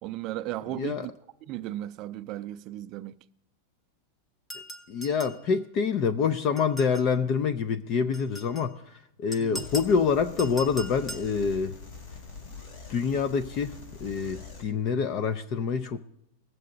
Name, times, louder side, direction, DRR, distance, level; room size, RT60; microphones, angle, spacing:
voice 1, 0.0-1.1 1.5-3.2 9.4-9.7, right 14 dB, 40° right, 0.4 m, -36 dB
voice 2, 0.7-1.1 4.9-11.8 12.9-16.0, left 6 dB, 40° left, 0.5 m, -26 dB
sound 1, 4.5-5.4 6.6-7.1 8.1-8.7 9.3-10.0 10.4-11.3, equal, 15° left, 0.8 m, -40 dB
sound 2, 9.5-14.6, left 4 dB, 65° left, 3.4 m, -44 dB
20.0 x 7.7 x 3.9 m
supercardioid pair, 145°, 0 cm